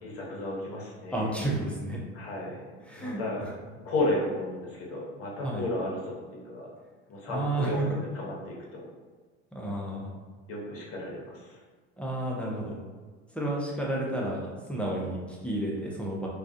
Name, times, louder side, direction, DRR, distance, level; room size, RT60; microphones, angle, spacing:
voice 1, 0.0-1.2 2.1-2.7 2.9-3.4 3.8-6.7 7.1-7.8 8.1-8.9 10.5-11.6, left 1 dB, 45° left, -3 dB, 0.9 m, -33 dB
voice 2, 1.1-2.0 2.9-3.5 5.4-5.7 7.2-8.0 9.5-10.2 12.0-12.7 13.3-16.3, right 1 dB, 5° left, -4 dB, 0.5 m, -31 dB
2.3 x 2.2 x 2.5 m, 1.4 s
hypercardioid pair, 75°, 33 cm